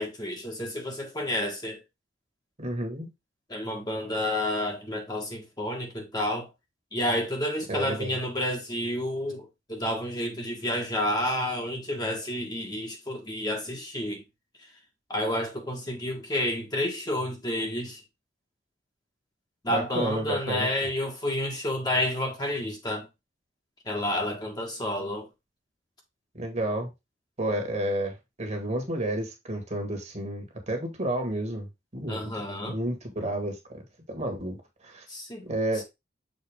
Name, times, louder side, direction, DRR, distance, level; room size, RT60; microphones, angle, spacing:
voice 1, 0.0-1.8 3.5-6.5 6.9-14.2 15.1-18.0 19.6-23.1 23.9-25.3 32.1-32.8 35.1-35.4 35.8-35.9, left 1 dB, 20° left, 1.6 m, -30 dB
voice 2, 2.6-3.1 7.7-8.2 19.7-20.7 26.4-26.9 27.4-31.7 31.9-32.3 32.7-33.6 34.1-34.6 34.8-35.0 35.4-35.8, right 1 dB, 40° right, 1.8 m, -30 dB
6.8 x 4.2 x 3.5 m
head